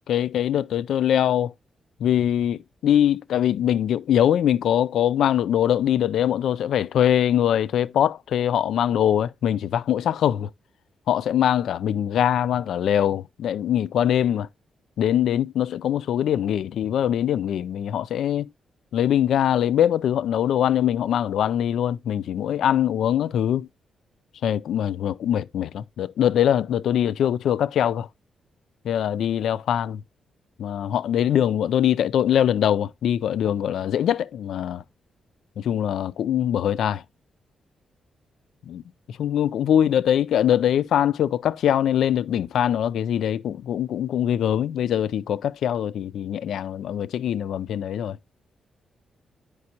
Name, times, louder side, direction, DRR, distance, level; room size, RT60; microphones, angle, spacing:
voice 1, 0.1-1.5 2.0-10.5 11.1-14.5 15.0-18.5 18.9-23.7 24.4-28.1 28.8-30.0 30.6-34.8 35.6-37.0 38.7-38.8 39.2-48.2, left 10 dB, 80° left, 0.3 m, -22 dB
9.5 x 5.2 x 2.8 m
wide cardioid pair, 150°, 0 cm